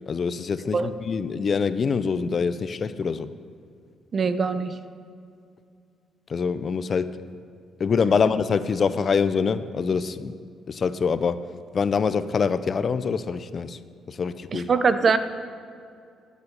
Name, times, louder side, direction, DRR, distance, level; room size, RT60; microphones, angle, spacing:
voice 1, 0.1-3.3 6.3-7.2 7.8-10.3 10.7-13.8 14.1-14.7, left 5 dB, 45° left, 13 dB, 0.5 m, -25 dB
voice 2, 4.1-4.8 14.5-15.2, right 5 dB, 45° right, 11 dB, 0.6 m, -22 dB
12.0 x 7.3 x 6.7 m, 2.3 s
cardioid pair, 90°, 0 cm